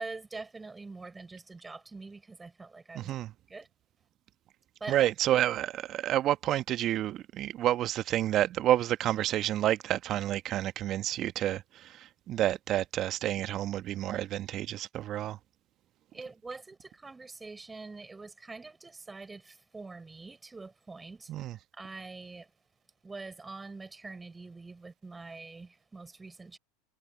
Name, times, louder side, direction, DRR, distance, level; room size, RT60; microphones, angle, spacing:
voice 1, 0.0-3.1 3.5-3.7 4.8-5.1 16.1-21.4 21.7-22.5 23.0-26.6, right 3 dB, 15° right, 6.7 m, -44 dB
voice 2, 2.9-3.3 4.9-11.6 12.0-15.4 21.3-21.6, right 13 dB, 45° right, 1.4 m, -29 dB
hypercardioid pair, 85°, 0 cm